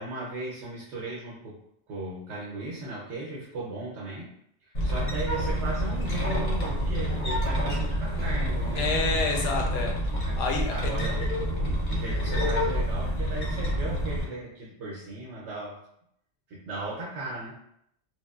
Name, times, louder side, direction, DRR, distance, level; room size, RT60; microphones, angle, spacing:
voice 1, 0.0-1.6 1.9-4.3 4.6-8.9 10.2-10.4 10.7-15.8 16.5-17.6, right 2 dB, 75° right, -5 dB, 0.9 m, -37 dB
sound 1, 4.7-14.2, equal, 50° left, 0.7 m, -28 dB
voice 2, 8.8-9.9 10.4-10.7, left 4 dB, 90° left, 2 dB, 0.9 m, -28 dB
3.1 x 2.0 x 2.2 m, 0.75 s
omnidirectional pair, 1.2 m